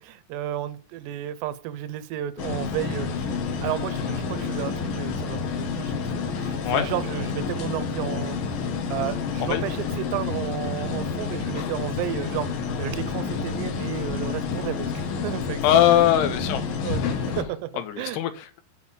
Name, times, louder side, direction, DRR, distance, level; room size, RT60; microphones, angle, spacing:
voice 1, 0.0-3.3 3.6-5.9 6.4-8.4 8.9-14.9 15.2-15.6 15.9-16.0 16.8-17.0 17.4-18.2, right 12 dB, 85° right, 2.7 m, -32 dB
sound 1, 2.4-17.4, left 5 dB, 65° left, 2.5 m, -29 dB
voice 2, 15.6-16.6 17.3-17.4 17.9-18.6, left 11 dB, 80° left, 2.5 m, -21 dB
8.2 x 5.1 x 7.1 m
omnidirectional pair, 5.1 m